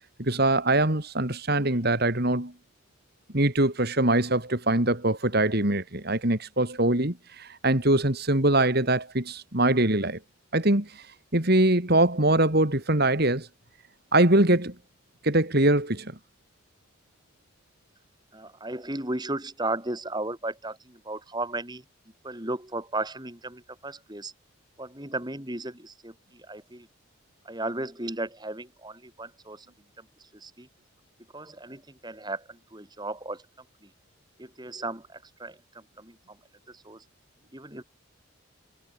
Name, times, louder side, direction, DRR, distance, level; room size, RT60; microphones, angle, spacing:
voice 1, 0.2-2.5 3.3-10.2 10.5-11.1 11.3-13.5 14.1-14.7 15.2-16.2, right 1 dB, 45° right, 2.9 m, -23 dB
voice 2, 18.3-21.8 22.2-24.3 24.8-26.9 27.5-29.7 30.0-30.1 30.3-30.7 31.3-33.4 33.8-33.9 34.4-36.4 36.7-37.0 37.5-37.8, right 2 dB, 20° right, 3.6 m, -35 dB
head